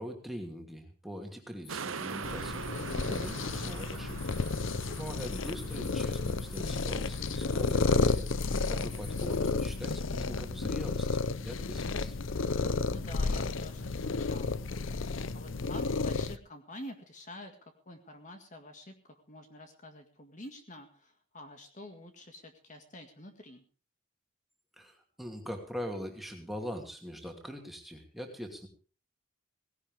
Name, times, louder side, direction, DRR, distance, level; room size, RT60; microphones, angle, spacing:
voice 1, 0.0-4.2 4.9-12.1 24.7-28.7, equal, ahead, 2 dB, 2.6 m, -42 dB
sound 1, 1.6-9.8, left 3 dB, 20° left, 6.2 m, -51 dB
sound 2, 1.7-8.3 8.8-8.9, right 5 dB, 80° right, 0.8 m, -43 dB
sound 3, 2.2-16.4, left 3 dB, 70° left, 0.7 m, -32 dB
voice 2, 12.9-14.7 15.3-23.6, left 1 dB, 35° left, 5 dB, 1.9 m, -48 dB
18.5 x 16.5 x 3.5 m, 0.36 s
head